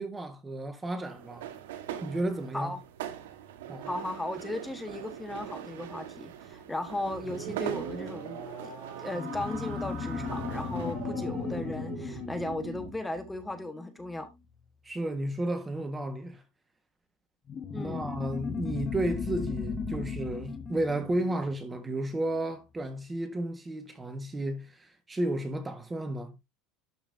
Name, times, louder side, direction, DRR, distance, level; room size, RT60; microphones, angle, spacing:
voice 1, 0.0-1.5 2.0-2.7 3.7-3.9 14.8-16.4 17.7-26.3, right 1 dB, 15° right, 1.6 m, -33 dB
sound 1, 1.0-10.9, right 10 dB, 90° right, 1.5 m, -42 dB
voice 2, 3.9-8.7 9.0-14.3 17.7-18.1, left 2 dB, 10° left, 1.5 m, -36 dB
sound 2, 7.0-13.0, right 6 dB, 55° right, 4.9 m, -42 dB
sound 3, 9.1-14.1 17.5-22.4, left 6 dB, 30° left, 1.6 m, -37 dB
12.0 x 5.7 x 2.8 m
supercardioid pair, 115°, 0 cm